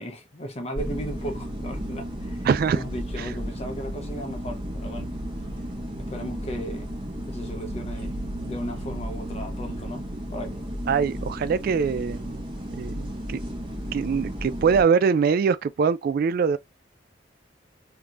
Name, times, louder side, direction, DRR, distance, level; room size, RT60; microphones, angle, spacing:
voice 1, 0.0-2.5 2.7-5.1 6.0-6.9 7.2-10.8, equal, 35° left, 0.9 m, -36 dB
sound 1, 0.8-14.8, equal, 30° right, 1.2 m, -33 dB
voice 2, 2.4-2.8 3.2-3.3 10.9-12.4 12.7-13.4 13.9-16.6, right 6 dB, 55° right, 0.3 m, -23 dB
3.5 x 2.9 x 2.4 m
head